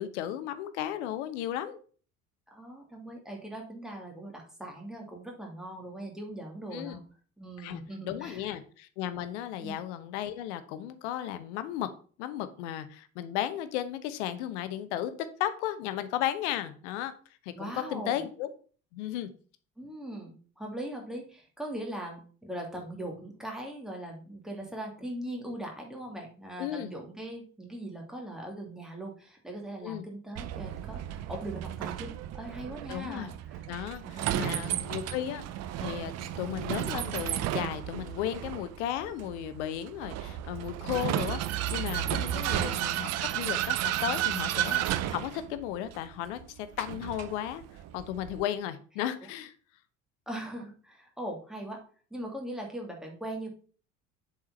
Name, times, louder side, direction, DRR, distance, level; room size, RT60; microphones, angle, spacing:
voice 1, 0.0-1.8 6.7-7.0 7.6-11.9 12.2-15.1 15.4-17.1 17.4-18.5 18.9-19.3 26.6-26.9 29.8-30.1 32.9-33.3 33.7-35.4 35.8-36.1 36.4-47.6 47.9-49.5, left 11 dB, 60° left, 12 dB, 1.0 m, -35 dB
voice 2, 2.5-7.0 7.4-8.5 9.6-9.8 17.5-18.2 19.8-33.6 34.1-34.6 42.2-42.4 50.3-51.8 52.1-53.5, right 1 dB, ahead, 0 dB, 2.8 m, -40 dB
Vehicle, 30.4-48.4, right 12 dB, 40° right, 0.7 m, -33 dB
7.3 x 4.8 x 5.8 m, 0.42 s
figure-of-eight pair, 60°, 39 cm